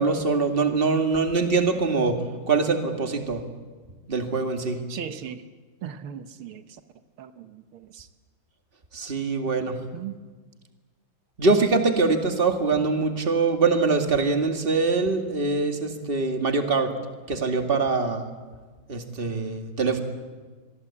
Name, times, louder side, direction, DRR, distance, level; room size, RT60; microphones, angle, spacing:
voice 1, 0.0-2.2 2.5-3.4 4.1-4.8 8.9-9.8 11.4-16.9 17.3-18.3 18.9-20.0, right 4 dB, 25° right, 5 dB, 2.2 m, -23 dB
voice 2, 4.9-5.4 5.8-6.8 7.2-8.1 9.5-10.2, right 8 dB, 80° right, 9 dB, 1.9 m, -38 dB
26.5 x 22.0 x 8.5 m, 1.4 s
omnidirectional pair, 2.3 m